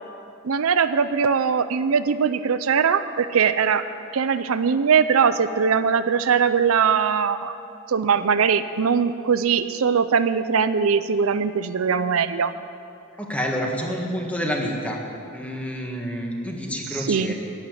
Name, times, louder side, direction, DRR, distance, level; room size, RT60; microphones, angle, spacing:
voice 1, 0.4-3.8 4.1-7.6 7.9-12.5 17.1-17.3, right 6 dB, 75° right, 12 dB, 0.5 m, -21 dB
voice 2, 13.2-15.0 15.3-17.3, equal, 5° left, 0 dB, 1.7 m, -28 dB
11.5 x 10.0 x 9.4 m, 2.6 s
head